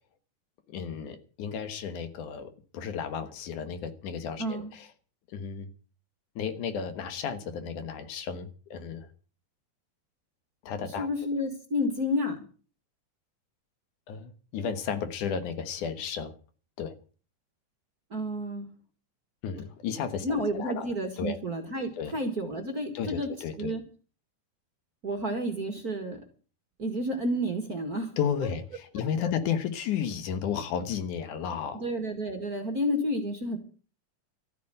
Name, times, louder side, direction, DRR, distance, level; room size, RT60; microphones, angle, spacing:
voice 1, 0.7-4.9 5.3-5.7 6.4-9.1 10.6-11.1 14.1-16.4 16.8-16.9 19.4-20.3 20.5-21.4 22.0-22.2 22.9-23.7 28.2-31.8, left 7 dB, 75° left, 10 dB, 2.8 m, -33 dB
voice 2, 4.4-4.7 11.0-12.5 18.1-18.7 20.2-23.3 23.6-23.8 25.0-26.2 26.8-28.1 31.7-33.6, equal, 35° right, 6 dB, 1.8 m, -30 dB
13.5 x 9.3 x 7.8 m, 0.40 s
omnidirectional pair, 3.7 m